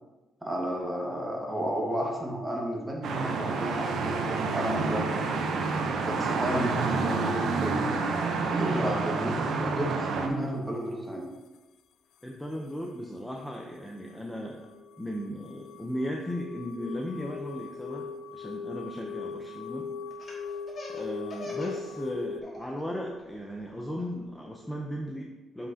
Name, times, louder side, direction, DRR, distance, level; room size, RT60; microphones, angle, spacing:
voice 1, 0.4-5.2 6.0-7.9 8.5-11.3, right 1 dB, 10° right, -1 dB, 1.6 m, -32 dB
sound 1, 3.0-10.3, right 4 dB, 70° right, 0.8 m, -29 dB
voice 2, 12.2-14.7 15.0-18.1 18.3-19.9 20.9-25.7, equal, 5° left, 0 dB, 0.7 m, -36 dB
sound 2, 14.0-22.4, left 5 dB, 75° left, 0.4 m, -39 dB
Laughter, 20.1-21.8 22.2-22.8 23.2-24.9, left 2 dB, 40° left, 2.1 m, -43 dB
7.4 x 5.6 x 2.8 m, 1.1 s
cardioid pair, 90°, 0 cm